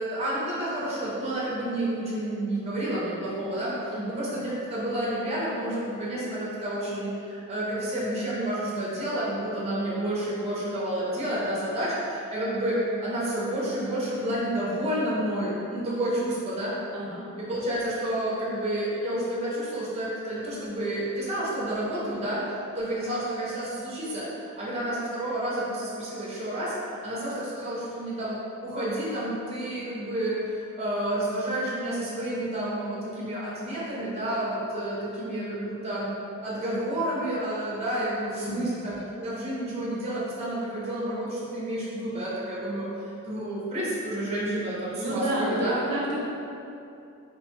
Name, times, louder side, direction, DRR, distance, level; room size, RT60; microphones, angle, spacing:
voice 1, 0.0-16.7 17.4-24.3 24.6-26.7 27.0-36.1 36.4-45.8, right 1 dB, 30° right, -7 dB, 0.5 m, -30 dB
voice 2, 16.9-17.2 38.4-38.7 44.9-46.2, right 1 dB, 90° right, -5 dB, 0.6 m, -30 dB
2.9 x 2.1 x 2.9 m, 2.7 s
head